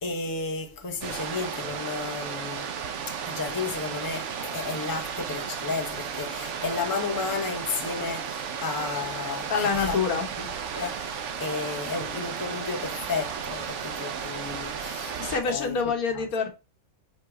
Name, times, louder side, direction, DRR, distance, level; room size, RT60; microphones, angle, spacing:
voice 1, 0.0-2.7 3.1-10.0 10.4-10.5 10.7-15.2 15.5-15.7 16.1-16.2, left 4 dB, 20° left, 0.8 m, -33 dB
sound 1, 1.0-15.4, right 7 dB, 60° right, 1.0 m, -34 dB
voice 2, 9.5-10.3 15.2-16.5, left 5 dB, 80° left, 1.6 m, -26 dB
5.3 x 3.9 x 4.8 m
omnidirectional pair, 1.5 m